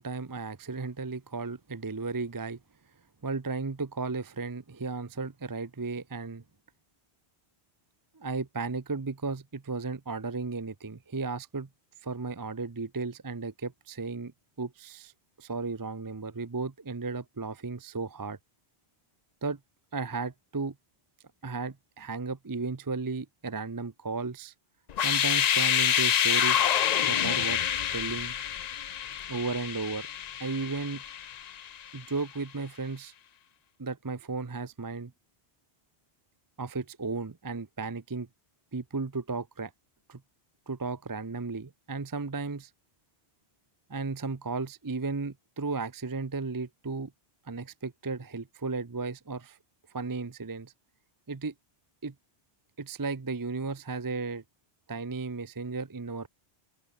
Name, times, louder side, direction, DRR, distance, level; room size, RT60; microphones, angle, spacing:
voice 1, 0.0-2.6 3.2-6.4 8.1-11.7 12.0-14.3 14.6-15.1 15.4-18.4 19.4-19.6 19.9-20.7 21.4-24.5 25.0-27.6 27.9-28.3 29.3-30.1 30.4-31.0 31.9-33.1 33.8-35.1 36.6-38.3 38.7-39.7 40.1-40.2 40.7-42.7 43.9-47.1 47.5-49.6 49.9-50.7 51.3-51.5 52.0-52.1 52.8-54.4 54.9-56.3, right 4 dB, 25° right, 0.6 m, -34 dB
sound 1, 24.9-31.8, left 9 dB, 50° left, 0.5 m, -27 dB
open air
omnidirectional pair, 1.1 m